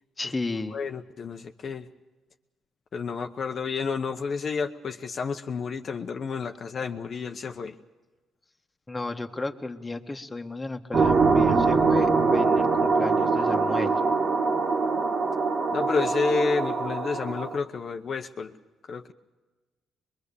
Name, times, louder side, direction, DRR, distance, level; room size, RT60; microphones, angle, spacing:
voice 1, 0.2-0.8 8.9-14.0, left 3 dB, 20° left, 5 dB, 1.6 m, -33 dB
voice 2, 0.7-1.9 2.9-7.8 15.0-15.1 15.7-18.6 18.9-19.1, left 5 dB, 50° left, 4 dB, 1.0 m, -30 dB
sound 1, 10.9-17.6, right 4 dB, 45° right, 2.2 m, -23 dB
23.5 x 22.5 x 7.0 m, 1.2 s
cardioid pair, 90°, 0 cm